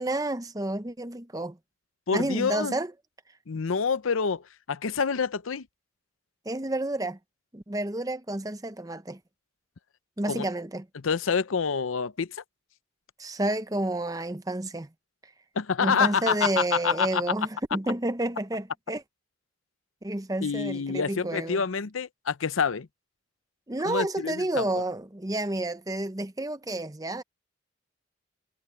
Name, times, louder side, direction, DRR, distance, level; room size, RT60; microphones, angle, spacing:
voice 1, 0.0-1.6 2.1-2.9 6.5-7.2 7.5-9.2 10.2-10.9 13.2-14.9 15.8-19.0 20.0-21.6 23.7-27.2, right 1 dB, 15° right, 0.8 m, -30 dB
voice 2, 2.1-2.7 3.5-5.7 10.3-10.4 10.9-12.4 15.6-17.2 20.4-22.9 23.8-24.7, left 5 dB, 85° left, 0.7 m, -27 dB
head